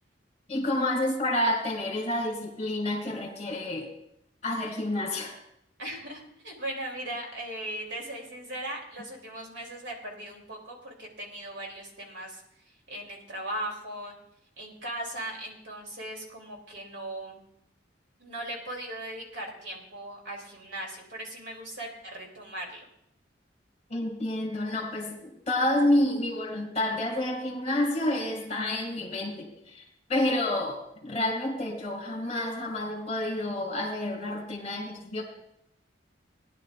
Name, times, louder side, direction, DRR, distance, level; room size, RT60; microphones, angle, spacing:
voice 1, 0.5-3.9 4.4-5.3 23.9-29.8 30.1-35.2, left 1 dB, 35° left, 3 dB, 2.2 m, -29 dB
voice 2, 5.8-12.4 12.9-14.1 14.6-17.5 18.2-22.9, right 1 dB, 70° right, -1 dB, 3.1 m, -38 dB
19.0 x 10.5 x 2.5 m, 0.77 s
head